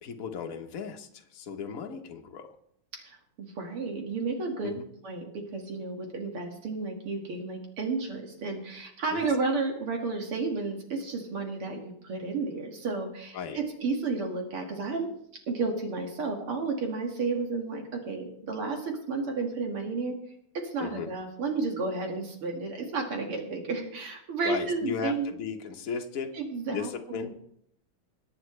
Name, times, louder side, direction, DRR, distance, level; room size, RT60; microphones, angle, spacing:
voice 1, 0.0-2.5 4.6-4.9 9.1-9.3 13.3-13.6 20.8-21.1 24.4-26.4 26.7-27.3, left 6 dB, 45° left, 4 dB, 1.3 m, -36 dB
voice 2, 2.9-4.7 5.0-15.1 15.5-20.2 20.5-25.4 26.3-27.3, right 4 dB, 75° right, 2 dB, 2.9 m, -32 dB
21.5 x 9.0 x 3.3 m, 0.70 s
omnidirectional pair, 2.4 m